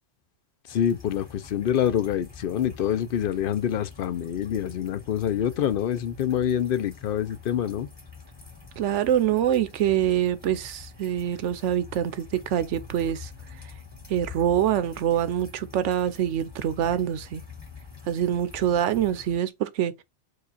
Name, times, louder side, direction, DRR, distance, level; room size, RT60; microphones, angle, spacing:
voice 1, 0.7-7.9, left 9 dB, 60° left, 0.6 m, -26 dB
sound 1, 0.7-19.4, left 5 dB, 25° left, 2.1 m, -46 dB
voice 2, 8.8-13.3 14.1-17.4 18.1-20.0, right 10 dB, 90° right, 1.0 m, -25 dB
4.9 x 2.4 x 4.0 m
omnidirectional pair, 1.2 m